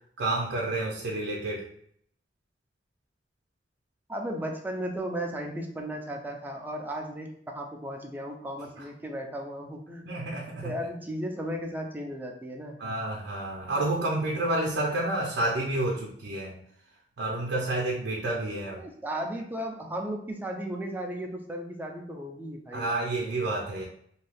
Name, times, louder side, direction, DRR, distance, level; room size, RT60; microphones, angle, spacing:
voice 1, 0.2-1.6 10.1-10.7 12.8-16.6 17.2-18.8 22.7-23.8, right 2 dB, 80° right, -1 dB, 0.5 m, -29 dB
voice 2, 4.1-12.8 18.8-22.9, equal, 10° right, 1 dB, 0.4 m, -35 dB
2.6 x 2.3 x 3.4 m, 0.66 s
head